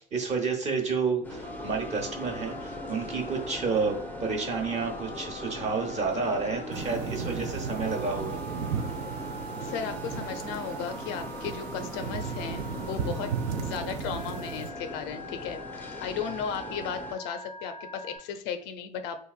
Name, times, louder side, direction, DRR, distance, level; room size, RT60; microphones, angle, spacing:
voice 1, 0.0-8.4, right 4 dB, 30° right, 3 dB, 1.0 m, -30 dB
sound 1, 1.2-17.1, left 1 dB, 10° left, 0.5 m, -40 dB
Telephone, 1.4-18.2, right 1 dB, 80° right, 1.0 m, -43 dB
sound 2, 6.7-14.7, right 6 dB, 55° right, 0.5 m, -36 dB
voice 2, 9.6-19.2, left 7 dB, 55° left, 8 dB, 0.5 m, -35 dB
3.9 x 2.5 x 2.4 m, 0.62 s
hypercardioid pair, 75°, 21 cm